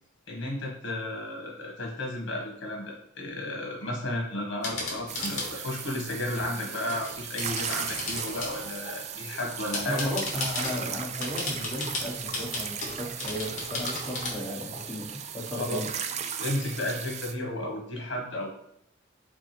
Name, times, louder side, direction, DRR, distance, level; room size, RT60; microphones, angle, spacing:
voice 1, 0.3-10.1 15.5-15.8 16.4-18.6, left 1 dB, 65° left, -1 dB, 1.2 m, -33 dB
sound 1, 4.6-5.5 6.3-8.7 9.3-10.8 11.2-14.3, left 2 dB, 40° left, 1.3 m, -35 dB
sound 2, 5.1-17.3, right 7 dB, 35° right, 0.3 m, -37 dB
voice 2, 9.8-15.9, left 1 dB, 5° left, -7 dB, 1.4 m, -35 dB
4.8 x 2.4 x 4.4 m, 0.75 s
head